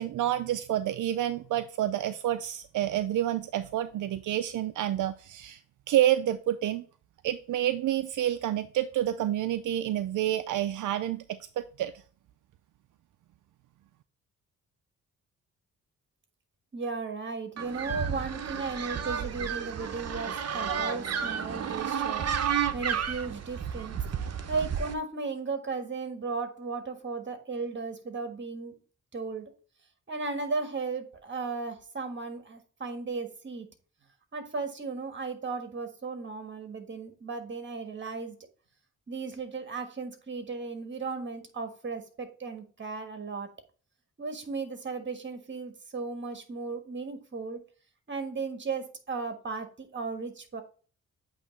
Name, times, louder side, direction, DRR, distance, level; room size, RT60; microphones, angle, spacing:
voice 1, 0.0-5.6 5.9-6.8 7.2-11.9, right 12 dB, 75° right, 10 dB, 0.5 m, -28 dB
voice 2, 16.7-22.3 22.7-24.0 24.5-28.8 29.1-29.5 30.1-33.7 34.3-38.4 39.1-43.5 44.2-47.6 48.1-50.6, right 4 dB, 35° right, 7 dB, 1.5 m, -35 dB
sound 1, 17.6-24.9, right 7 dB, 55° right, 0.8 m, -32 dB
8.3 x 3.0 x 4.2 m, 0.39 s
cardioid pair, 95°, 31 cm